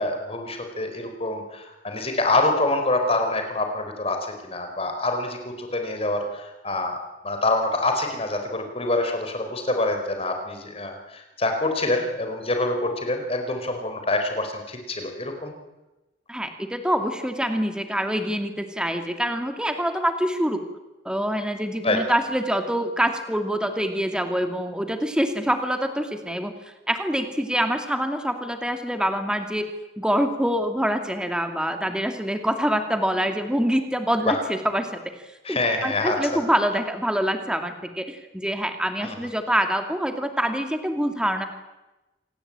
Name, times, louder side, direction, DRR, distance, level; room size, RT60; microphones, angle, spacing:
voice 1, 0.0-7.0 7.2-15.5 21.8-22.0 34.3-34.4 35.4-36.4 39.0-39.2, left 2 dB, 35° left, 5 dB, 4.5 m, -26 dB
voice 2, 16.3-20.6 21.1-26.5 26.9-29.7 30.0-35.0 35.5-41.5, equal, 5° right, 6 dB, 2.4 m, -25 dB
27.0 x 19.0 x 8.9 m, 1.1 s
head